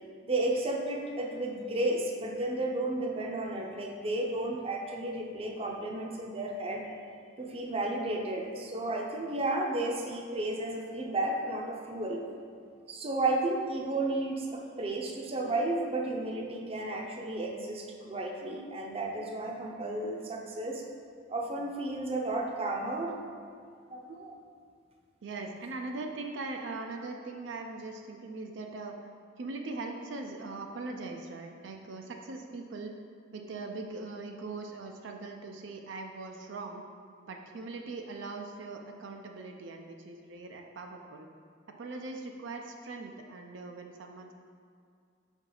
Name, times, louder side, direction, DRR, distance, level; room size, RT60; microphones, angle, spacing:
voice 1, 0.3-6.8 7.4-12.2 12.9-20.8 21.3-23.2 23.9-24.4, right 2 dB, 30° right, 0 dB, 0.6 m, -33 dB
voice 2, 25.2-29.0 29.4-32.9 33.3-36.8 37.3-41.3 41.8-44.3, right 3 dB, 75° right, 3 dB, 0.5 m, -40 dB
5.5 x 4.5 x 3.9 m, 2.3 s
head